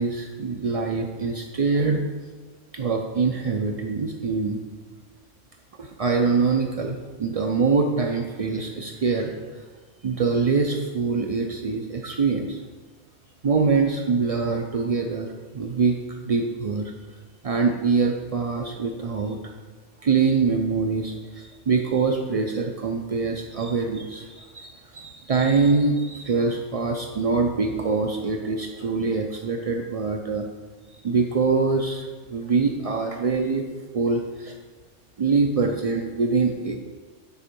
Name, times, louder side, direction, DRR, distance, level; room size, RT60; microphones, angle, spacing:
voice 1, 0.0-2.0 2.7-4.6 5.8-9.6 10.0-12.6 13.4-16.0 16.2-16.9 17.4-19.4 20.0-30.5 30.9-33.6 33.9-34.5 35.2-36.8, right 4 dB, 60° right, 2 dB, 0.3 m, -24 dB
9.4 x 4.4 x 5.3 m, 1.4 s
omnidirectional pair, 1.3 m